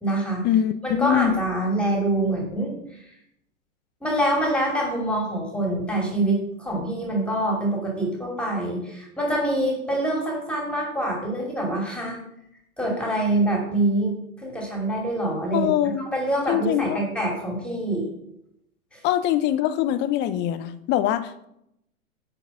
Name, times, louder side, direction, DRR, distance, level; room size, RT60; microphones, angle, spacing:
voice 1, 0.0-0.4 0.8-3.1 4.0-12.2 12.8-18.1 18.9-19.0, right 1 dB, ahead, -2 dB, 2.7 m, -25 dB
voice 2, 1.0-1.3 15.5-16.0 16.5-17.0 19.0-21.4, left 11 dB, 25° left, 11 dB, 0.6 m, -23 dB
10.0 x 4.6 x 7.0 m, 0.78 s
hypercardioid pair, 115°, 44 cm